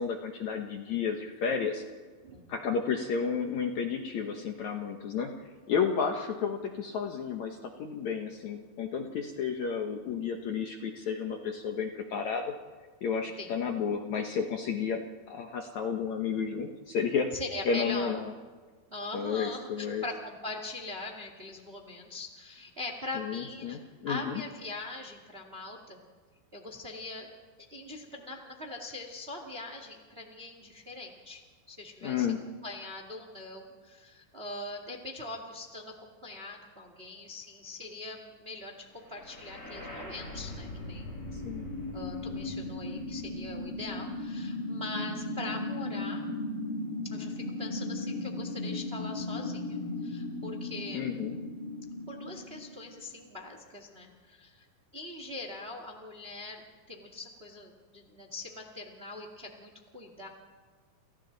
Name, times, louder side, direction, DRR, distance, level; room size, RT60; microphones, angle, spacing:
voice 1, 0.0-1.8 2.5-12.5 13.0-15.0 15.3-17.3 17.7-18.3 19.1-20.0 23.2-24.4 32.0-32.4 41.3-41.7 50.9-51.4, left 6 dB, 65° left, 3 dB, 2.0 m, -32 dB
voice 2, 2.2-2.5 13.4-13.5 17.3-18.1 18.9-23.8 24.0-26.0 26.5-27.3 27.7-31.4 31.7-32.3 32.6-41.1 41.9-46.2 47.1-51.1 52.1-54.6 54.9-60.3, left 2 dB, 25° right, 3 dB, 1.4 m, -42 dB
sound 1, 39.1-53.1, left 2 dB, 25° left, 8.5 m, -37 dB
29.5 x 29.0 x 4.0 m, 1.5 s
omnidirectional pair, 4.5 m